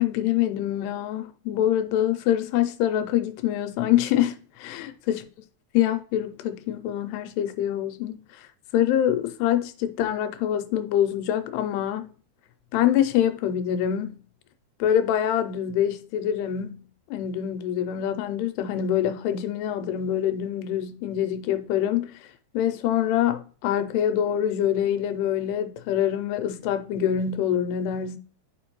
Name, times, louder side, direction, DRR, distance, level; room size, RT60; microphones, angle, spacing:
voice 1, 0.0-5.2 5.7-8.5 8.7-12.1 12.7-14.2 14.8-16.9 17.1-22.1 22.5-28.2, left 10 dB, 85° left, 2.7 m, -25 dB
10.5 x 5.1 x 3.0 m
omnidirectional pair, 4.8 m